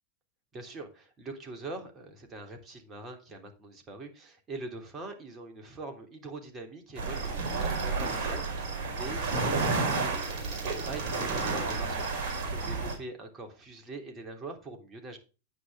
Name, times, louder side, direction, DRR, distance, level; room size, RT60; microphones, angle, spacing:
voice 1, 0.5-15.2, right 3 dB, 25° right, 4 dB, 3.3 m, -43 dB
sound 1, 7.0-12.9, right 3 dB, 45° right, 4.9 m, -31 dB
9.6 x 9.5 x 3.6 m, 0.32 s
figure-of-eight pair, 90°, 0 cm